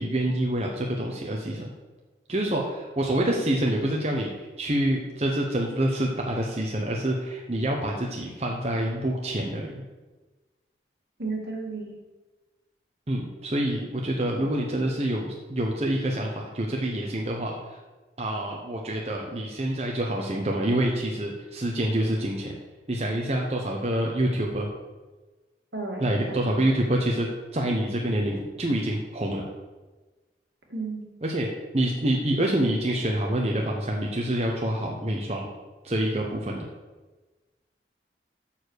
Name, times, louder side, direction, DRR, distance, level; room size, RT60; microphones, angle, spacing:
voice 1, 0.0-1.7 2.3-9.8 13.1-17.6 18.2-22.5 22.9-24.7 26.0-27.3 27.5-29.5 31.2-31.5 31.7-35.5 35.8-36.7, right 1 dB, 35° right, -1 dB, 1.0 m, -27 dB
voice 2, 11.2-11.9 25.7-26.6 30.7-31.1, right 3 dB, 75° right, -1 dB, 2.3 m, -33 dB
7.1 x 6.9 x 6.5 m, 1.2 s
head